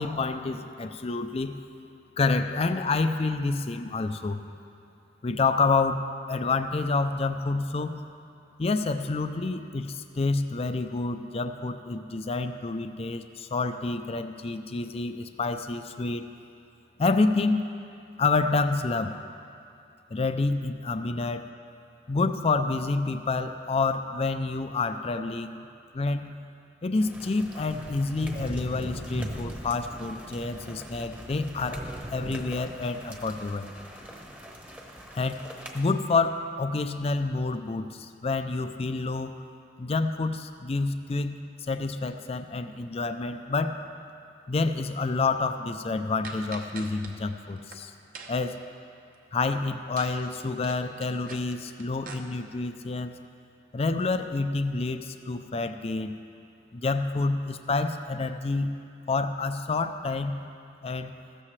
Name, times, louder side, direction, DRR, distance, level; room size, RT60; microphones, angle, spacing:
voice 1, 0.0-1.6 2.2-4.4 5.2-7.9 8.6-16.2 17.0-17.6 18.2-19.2 20.1-21.4 22.1-25.6 25.9-26.4 26.8-31.8 32.1-33.7 35.1-35.4 35.7-39.3 39.8-41.4 41.6-43.8 44.5-47.9 48.3-48.6 49.3-53.2 53.7-56.1 56.7-58.8 59.1-60.4 60.8-61.1, left 3 dB, 35° left, 9 dB, 0.4 m, -28 dB
sound 1, 27.0-35.9, equal, 10° right, 1.0 m, -40 dB
sound 2, 46.2-47.1 47.5-47.8 48.1-48.5 50.0-50.2 50.4-52.2, right 4 dB, 50° right, 1.0 m, -43 dB
15.0 x 13.0 x 3.2 m, 2.6 s
head